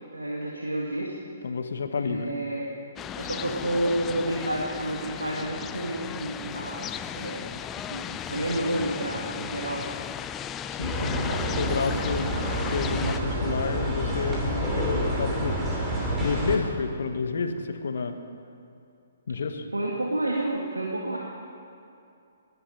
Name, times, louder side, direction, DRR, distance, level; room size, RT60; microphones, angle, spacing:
voice 1, 0.1-1.1 1.9-2.7 3.2-9.9 19.7-21.2, right 1 dB, 85° right, -2 dB, 1.8 m, -30 dB
voice 2, 1.4-2.4 10.8-12.3 12.7-15.6 16.2-18.2 19.3-19.6, left 5 dB, 60° left, 8 dB, 1.3 m, -29 dB
sound 1, 3.0-13.2, left 9 dB, 20° left, 0.4 m, -36 dB
sound 2, 10.8-16.6, right 1 dB, 10° right, 2.9 m, -28 dB
19.0 x 11.0 x 5.7 m, 2.6 s
figure-of-eight pair, 125°, 0 cm